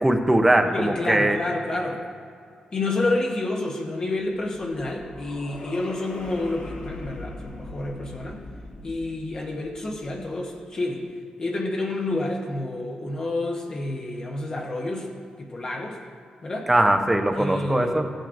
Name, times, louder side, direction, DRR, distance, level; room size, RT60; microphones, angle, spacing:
voice 1, 0.0-1.4 16.7-18.0, right 1 dB, 10° right, 5 dB, 0.6 m, -20 dB
voice 2, 0.7-2.0 2.7-8.4 8.8-11.1 11.4-15.1 15.4-16.0 16.4-16.7 17.4-18.0, left 2 dB, 30° left, -1 dB, 0.9 m, -29 dB
sound 1, 4.2-10.5, left 2 dB, 65° left, 2.5 m, -41 dB
15.5 x 8.9 x 2.6 m, 2.3 s
wide cardioid pair, 170°, 2 cm